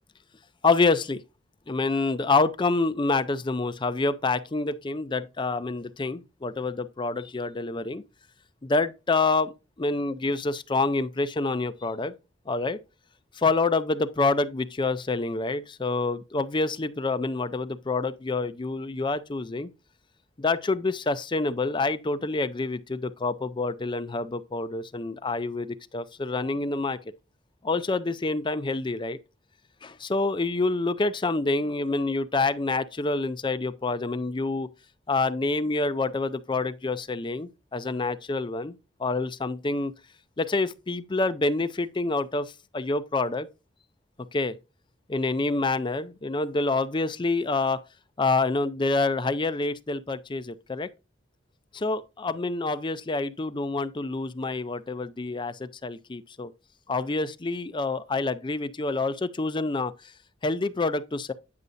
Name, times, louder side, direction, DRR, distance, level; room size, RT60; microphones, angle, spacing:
voice 1, 0.6-1.2 1.7-8.0 8.6-9.5 9.8-12.1 12.5-12.8 13.4-19.7 20.4-27.0 27.6-29.2 29.8-34.7 35.1-39.9 40.4-43.5 44.3-44.6 45.1-47.8 48.2-50.9 51.7-56.5 56.9-59.9 60.4-61.3, left 3 dB, 25° left, 0.5 m, -27 dB
9.5 x 6.6 x 2.6 m
head